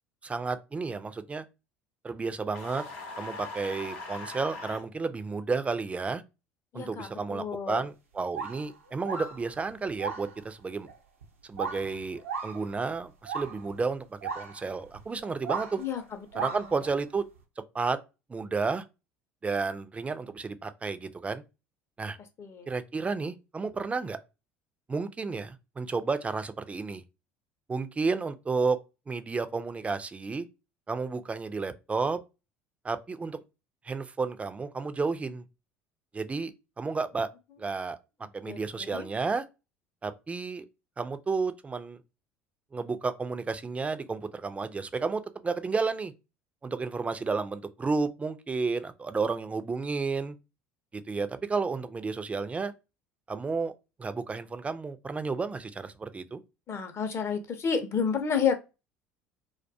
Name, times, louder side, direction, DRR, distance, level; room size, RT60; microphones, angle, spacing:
voice 1, 0.2-1.5 2.0-2.8 3.2-6.2 6.7-10.9 11.4-15.8 16.4-17.3 17.7-18.0 18.3-18.8 19.4-21.4 22.0-22.2 22.7-24.2 24.9-27.0 27.7-28.8 29.1-30.5 30.9-32.2 32.8-33.4 33.8-35.4 36.1-37.3 37.6-38.0 38.3-39.4 40.0-40.7 41.0-42.0 42.7-46.1 46.6-50.4 50.9-52.7 53.3-53.7 54.0-56.4, right 4 dB, 20° right, 0.3 m, -32 dB
sound 1, 2.5-4.8, left 3 dB, 75° left, 0.7 m, -40 dB
voice 2, 6.7-7.8 15.8-16.0 16.3-16.5 22.4-22.7 38.4-39.1 56.7-58.6, left 6 dB, 40° left, 0.6 m, -30 dB
sound 2, 8.4-10.4 10.8-10.9 11.2-11.3 11.5-13.8 14.2-16.0 16.3-16.9, right 5 dB, 85° right, 0.5 m, -37 dB
2.2 x 2.2 x 2.6 m
hypercardioid pair, 65°, 7 cm